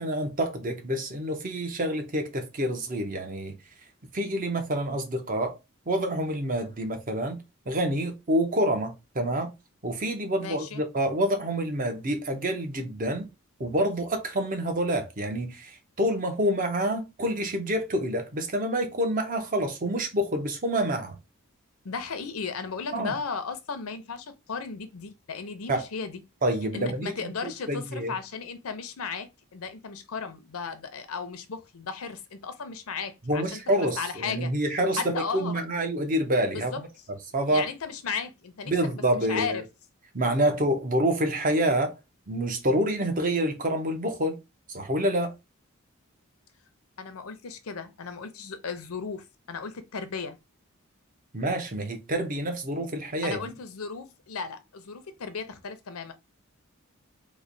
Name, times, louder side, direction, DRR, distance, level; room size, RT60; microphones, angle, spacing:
voice 1, 0.0-3.6 4.1-5.6 5.9-7.4 7.7-9.5 9.8-13.3 13.6-21.2 22.9-23.1 25.7-25.9 26.4-27.1 27.4-28.1 33.3-36.9 37.3-37.7 38.7-39.6 40.1-42.0 42.3-44.4 44.7-45.3 51.3-53.5, right 1 dB, 40° right, 0.7 m, -27 dB
voice 2, 10.4-10.8 21.8-26.2 26.7-34.5 34.9-35.7 36.5-36.8 37.5-39.6 47.0-50.4 53.2-56.1, left 5 dB, 80° left, 0.6 m, -35 dB
3.2 x 2.2 x 3.8 m
head